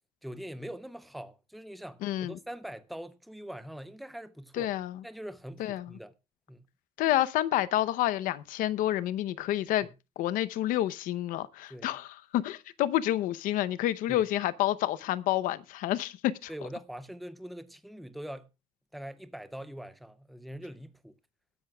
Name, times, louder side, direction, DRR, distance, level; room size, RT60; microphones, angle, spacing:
voice 1, 0.2-4.7 5.0-6.1 6.5-6.7 9.8-9.9 11.7-11.9 14.1-14.3 16.5-18.5 18.9-21.2, equal, ahead, 0.5 m, -43 dB
voice 2, 2.0-2.4 4.6-5.0 5.6-5.9 7.0-9.9 10.2-16.5, left 13 dB, 85° left, 0.7 m, -29 dB
21.0 x 11.0 x 2.3 m
cardioid pair, 175°, 14 cm